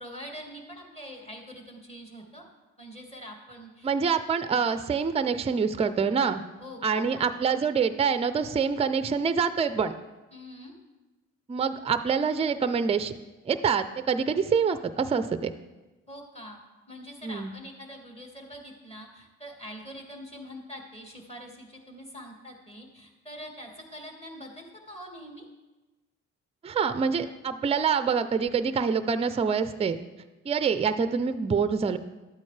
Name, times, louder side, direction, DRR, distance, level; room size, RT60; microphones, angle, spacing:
voice 1, 0.0-2.4 2.8-3.9 6.6-7.3 10.3-10.8 16.1-16.6 16.9-25.5, equal, 20° left, 1 dB, 1.9 m, -44 dB
voice 2, 3.8-6.4 6.8-9.9 11.5-13.1 13.5-15.5 17.2-17.5 26.6-30.0 30.5-32.0, right 6 dB, 20° right, 11 dB, 0.4 m, -26 dB
11.5 x 8.4 x 3.3 m, 1.1 s
cardioid pair, 90°, 30 cm